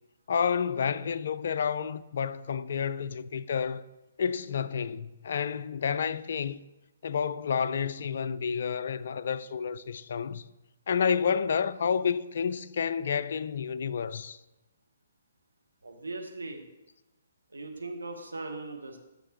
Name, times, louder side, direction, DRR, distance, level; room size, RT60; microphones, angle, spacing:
voice 1, 0.3-3.8 4.2-6.6 7.0-10.4 10.9-14.4, left 7 dB, 50° left, 0.3 m, -30 dB
voice 2, 15.8-16.6 17.5-19.0, right 2 dB, 70° right, 1.2 m, -39 dB
9.5 x 6.4 x 3.1 m
figure-of-eight pair, 130°, 0 cm